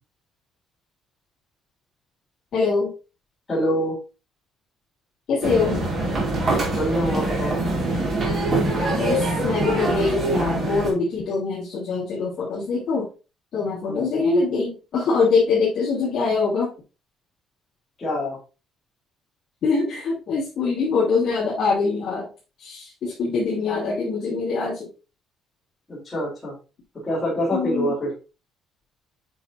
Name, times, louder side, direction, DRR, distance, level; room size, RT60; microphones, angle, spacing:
voice 1, 2.5-2.9 5.3-5.8 9.0-13.0 13.5-16.7 19.6-22.3 22.6-24.9 27.5-27.9, left 4 dB, 45° left, -7 dB, 2.7 m, -23 dB
voice 2, 3.5-4.0 6.7-7.5 13.9-14.1 18.0-18.4 25.9-26.5 27.0-28.1, equal, 15° left, -7 dB, 3.4 m, -25 dB
sound 1, 5.4-10.9, right 2 dB, 35° right, 2.5 m, -24 dB
8.2 x 5.7 x 2.7 m, 0.31 s
cardioid pair, 175°, 0 cm